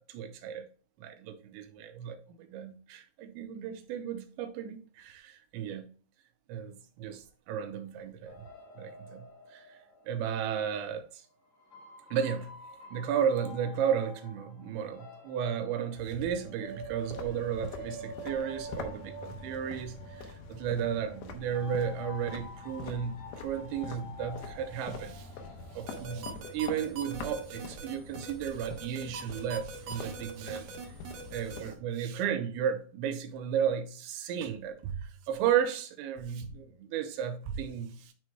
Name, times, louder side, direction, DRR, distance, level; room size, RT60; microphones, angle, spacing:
voice 1, 0.1-0.6 1.0-5.9 6.5-8.3 8.8-9.2 9.5-9.6 10.1-11.2 12.1-12.5 12.9-25.3 25.7-30.8 31.3-38.1, right 8 dB, 85° right, 3.0 m, -34 dB
sound 1, 8.2-10.8 11.5-26.2, equal, 55° left, 1.6 m, -47 dB
sound 2, 17.0-31.8, left 4 dB, 75° left, 2.3 m, -45 dB
sound 3, 25.9-31.6, right 3 dB, 65° right, 2.7 m, -42 dB
11.0 x 4.5 x 2.2 m
omnidirectional pair, 5.3 m